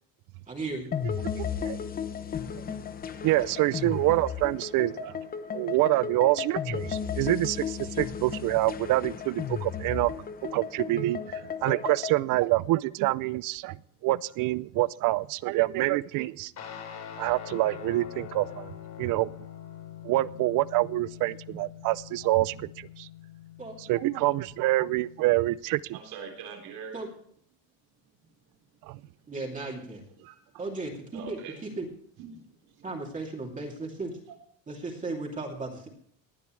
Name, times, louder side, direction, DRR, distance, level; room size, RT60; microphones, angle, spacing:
voice 1, 0.5-1.0 23.6-23.8 26.9-27.1 29.3-30.0 30.6-31.9 32.8-34.1 34.7-35.9, right 3 dB, 20° right, -2 dB, 2.7 m, -36 dB
sound 1, 0.9-12.2, left 7 dB, 25° left, 0.7 m, -34 dB
voice 2, 1.4-1.8 2.5-2.8 3.2-5.2 5.5-10.1 10.4-13.8 14.0-16.5 17.2-18.7 19.0-19.3 20.0-23.1 23.9-26.0 28.9-29.0, right 18 dB, 55° right, 20 dB, 0.5 m, -26 dB
Guitar, 16.6-25.3, left 9 dB, 45° left, 3.2 m, -44 dB
voice 3, 25.9-27.0 30.2-30.3 31.1-31.6 32.2-32.9, right 6 dB, 75° right, 2 dB, 4.0 m, -43 dB
19.0 x 10.5 x 3.2 m, 0.63 s
cardioid pair, 150°, 37 cm